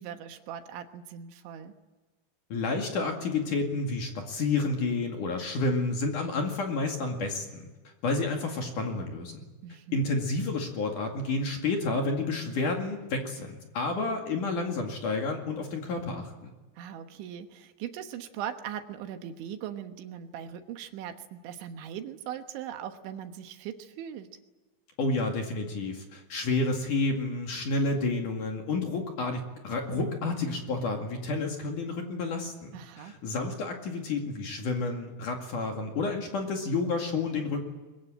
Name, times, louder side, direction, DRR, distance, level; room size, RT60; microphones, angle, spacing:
voice 1, 0.0-1.7 9.6-10.0 16.8-24.3 32.7-33.1, right 9 dB, 75° right, 7 dB, 3.5 m, -40 dB
voice 2, 2.5-7.6 8.0-9.4 9.9-16.5 25.0-37.6, left 3 dB, 50° left, 2 dB, 3.1 m, -30 dB
23.0 x 22.5 x 8.9 m, 1.2 s
omnidirectional pair, 5.6 m